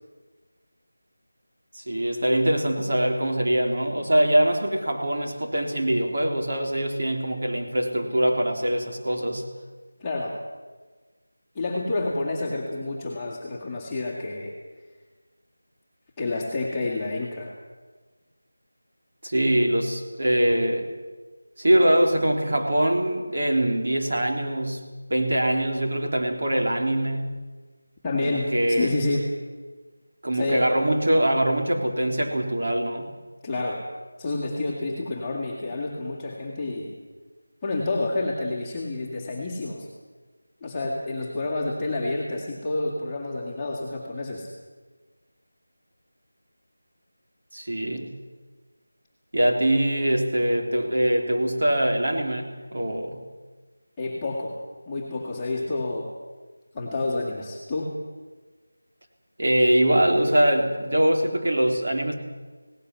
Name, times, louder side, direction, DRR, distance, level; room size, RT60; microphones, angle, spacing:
voice 1, 1.7-9.4 19.2-20.9 21.6-24.8 25.1-27.3 28.2-29.0 30.2-33.1 47.5-48.2 49.3-53.2 59.4-62.1, right 1 dB, 45° right, 2 dB, 3.5 m, -23 dB
voice 2, 10.0-10.4 11.5-14.5 16.2-17.5 28.0-29.3 30.3-30.7 33.4-33.8 34.2-37.0 37.6-39.9 40.6-44.5 54.0-54.6 54.9-56.1 56.7-58.0, left 2 dB, 5° left, -7 dB, 2.2 m, -29 dB
18.5 x 18.0 x 9.5 m, 1.3 s
figure-of-eight pair, 180°, 0 cm